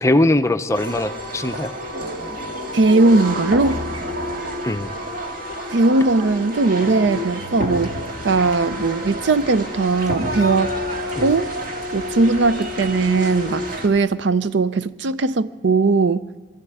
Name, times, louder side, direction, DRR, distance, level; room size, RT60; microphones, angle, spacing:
voice 1, 0.0-1.7 4.6-4.9 11.1-11.3, left 1 dB, 15° left, 0.5 m, -20 dB
sound 1, 0.7-13.9, left 1 dB, 45° right, 2.0 m, -29 dB
voice 2, 2.7-3.8 5.7-8.0 8.2-10.7 11.2-11.4 11.9-16.2, right 3 dB, 70° right, 0.5 m, -18 dB
sound 2, 8.2-14.0, equal, 20° right, 3.7 m, -44 dB
23.5 x 13.0 x 9.3 m
head